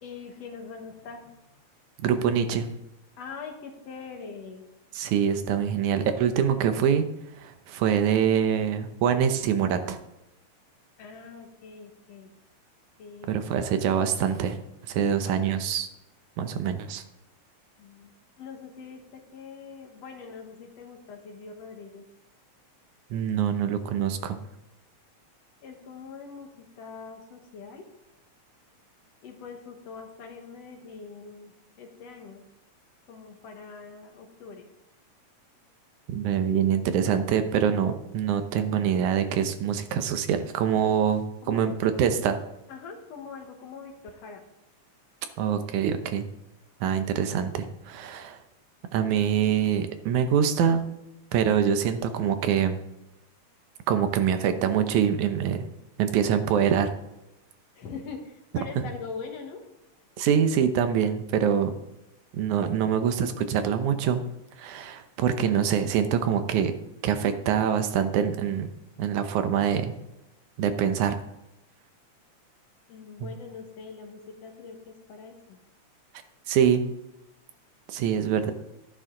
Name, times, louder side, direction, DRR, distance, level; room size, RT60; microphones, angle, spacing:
voice 1, 0.0-1.6 3.2-4.7 11.0-12.3 13.0-13.3 17.8-22.0 25.6-27.9 29.2-31.5 31.8-32.4 33.1-34.7 41.4-41.7 42.7-44.4 57.8-59.6 72.9-75.6, left 5 dB, 60° left, 3 dB, 2.4 m, -43 dB
voice 2, 2.0-2.7 4.9-7.1 7.4-10.0 13.3-14.6 14.9-15.9 16.4-17.0 23.1-24.4 36.1-42.4 45.4-46.3 46.8-48.4 48.9-50.8 51.3-52.8 53.9-55.7 56.0-56.9 58.8-58.9 60.2-61.8 62.3-64.2 64.6-66.7 67.0-68.7 69.0-69.9 70.6-71.2 73.2-73.3 76.5-76.9 77.9-78.5, right 8 dB, 85° right, 9 dB, 2.4 m, -25 dB
13.0 x 10.5 x 3.8 m, 0.89 s
omnidirectional pair, 3.4 m